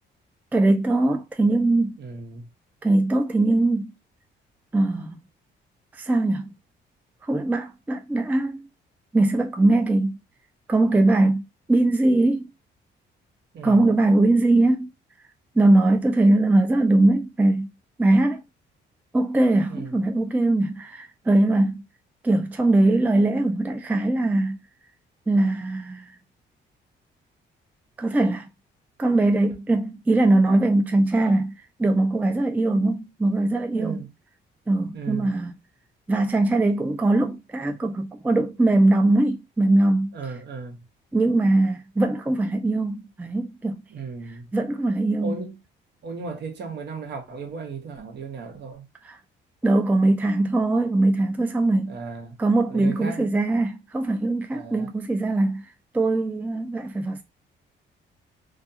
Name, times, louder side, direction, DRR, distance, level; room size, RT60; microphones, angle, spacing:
voice 1, 0.5-2.0 2.8-3.9 4.7-5.2 5.9-6.5 7.2-8.7 9.1-10.2 10.7-11.4 11.7-12.5 13.6-14.9 15.6-17.7 18.0-18.4 19.1-21.8 22.2-24.6 25.3-26.1 28.0-28.5 29.0-31.5 31.8-34.0 34.7-35.5 36.1-40.2 41.1-43.8 44.5-45.3 49.0-49.2 49.6-52.0 52.4-55.6 55.9-57.2, right 2 dB, 10° right, 0.3 m, -21 dB
voice 2, 2.0-2.5 13.5-13.8 19.7-20.0 33.7-34.1 34.9-35.3 40.1-40.9 43.9-44.5 45.2-45.6 46.0-48.9 51.8-52.4 52.7-53.4 54.5-54.9, right 4 dB, 60° right, 1.0 m, -36 dB
2.3 x 2.3 x 2.7 m
cardioid pair, 90°, 20 cm